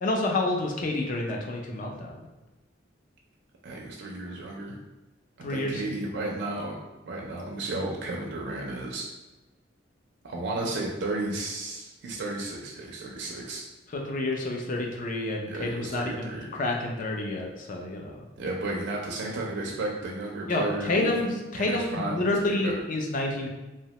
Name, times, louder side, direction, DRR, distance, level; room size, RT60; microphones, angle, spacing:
voice 1, 0.0-2.2 5.4-5.9 13.9-18.2 20.5-23.5, left 2 dB, 45° left, 1 dB, 0.4 m, -29 dB
voice 2, 3.6-4.8 5.4-6.8 7.0-9.1 10.2-13.6 15.5-16.5 18.4-21.2 21.6-22.3 22.6-22.8, right 2 dB, 65° right, -2 dB, 0.4 m, -33 dB
2.7 x 2.1 x 2.9 m, 1.1 s
head